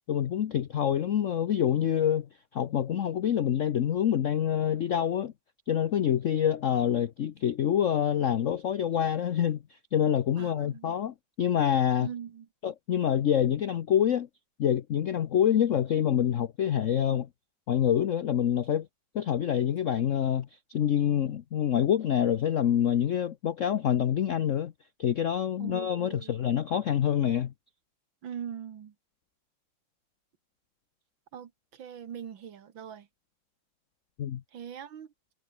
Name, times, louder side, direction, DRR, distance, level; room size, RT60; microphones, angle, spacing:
voice 1, 0.1-2.3 2.5-5.3 5.7-9.6 9.9-12.1 12.6-14.3 14.6-17.3 17.7-18.9 19.1-24.7 25.0-27.5 34.2-34.4, left 9 dB, 60° left, 0.8 m, -26 dB
voice 2, 10.4-11.0 12.0-12.5 25.6-26.4 28.2-28.9 31.3-33.1 34.5-35.1, right 8 dB, 70° right, 2.2 m, -41 dB
omnidirectional pair, 2.2 m